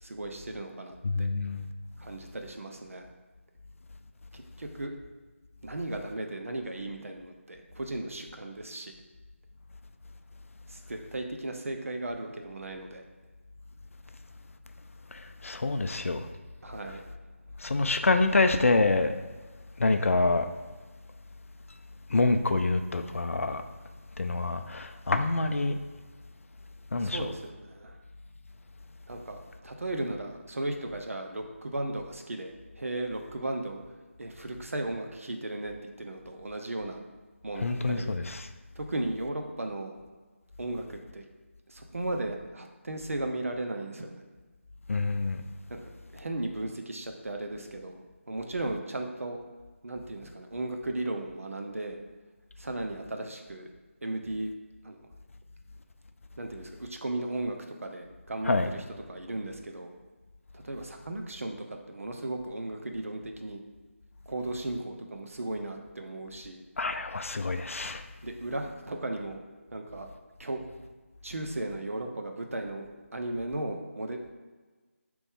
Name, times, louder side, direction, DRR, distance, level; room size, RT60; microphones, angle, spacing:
voice 1, 0.0-1.3 2.0-3.1 4.3-5.0 5.6-8.9 10.7-13.0 15.8-15.9 16.6-17.0 27.0-28.0 29.1-33.8 34.2-37.0 37.4-38.1 38.8-40.0 40.6-41.3 41.7-44.2 45.7-49.4 49.8-52.0 52.6-53.7 54.0-54.5 54.8-55.1 56.4-59.9 60.5-63.6 64.3-66.6 68.2-69.4 69.7-70.1 70.4-70.6 71.2-72.9 73.1-74.2, right 2 dB, 75° right, 4 dB, 0.6 m, -36 dB
voice 2, 1.0-1.6 15.1-16.2 17.6-19.1 19.8-20.5 22.1-23.6 24.2-25.8 26.9-27.3 37.6-38.4 44.9-45.4 58.5-58.7 66.8-68.0, left 3 dB, 70° left, 8 dB, 0.4 m, -26 dB
3.9 x 3.0 x 3.6 m, 1.3 s
figure-of-eight pair, 160°, 8 cm